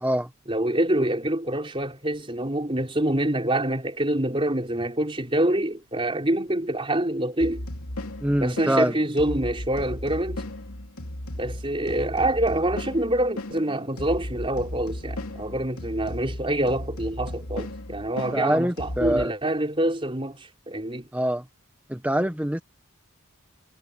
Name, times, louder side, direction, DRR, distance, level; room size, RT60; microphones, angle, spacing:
voice 1, 0.5-7.6 8.4-10.4 11.4-21.1, right 1 dB, 25° right, 4.1 m, -26 dB
sound 1, 7.4-19.3, left 1 dB, 80° left, 2.9 m, -36 dB
voice 2, 8.2-9.0 18.3-19.3 21.1-21.4 21.9-22.6, right 1 dB, 5° right, 1.0 m, -24 dB
head